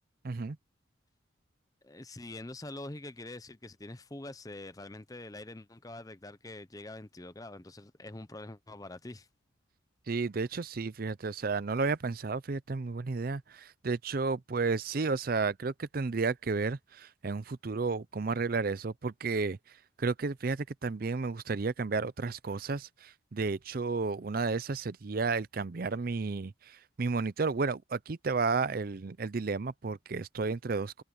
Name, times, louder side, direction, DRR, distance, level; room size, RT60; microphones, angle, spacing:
voice 1, 0.2-0.6 10.1-19.6 20.0-31.0, right 4 dB, 45° right, 0.5 m, -32 dB
voice 2, 1.8-9.3, left 2 dB, 20° left, 0.7 m, -45 dB
head